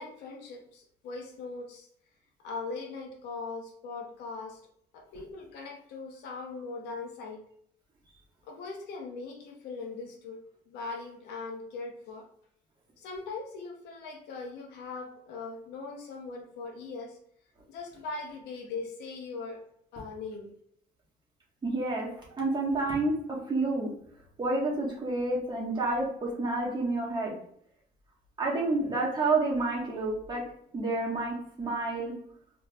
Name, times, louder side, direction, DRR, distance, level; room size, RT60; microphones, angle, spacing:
voice 1, 0.0-1.9 2.4-4.6 4.9-7.4 8.5-10.4 10.7-12.3 13.0-17.2 17.7-19.6 19.9-20.5, left 4 dB, 80° left, 1 dB, 0.9 m, -40 dB
voice 2, 21.6-22.1 22.4-23.2 23.5-23.9 24.4-27.3 28.4-30.4 30.7-32.1, right 2 dB, 25° right, -4 dB, 1.5 m, -29 dB
4.5 x 3.0 x 2.4 m, 0.67 s
cardioid pair, 110°, 17 cm